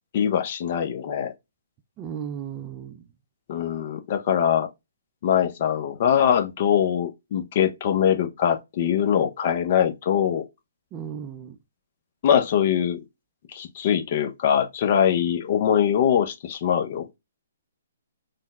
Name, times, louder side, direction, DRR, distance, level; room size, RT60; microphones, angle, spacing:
voice 1, 0.1-1.3 3.5-4.7 5.2-10.4 12.2-13.0 13.5-17.1, left 9 dB, 45° left, 0.5 m, -22 dB
voice 2, 2.0-3.1 10.9-11.6, right 8 dB, 25° right, 0.4 m, -35 dB
3.8 x 2.1 x 2.2 m
figure-of-eight pair, 135°, 0 cm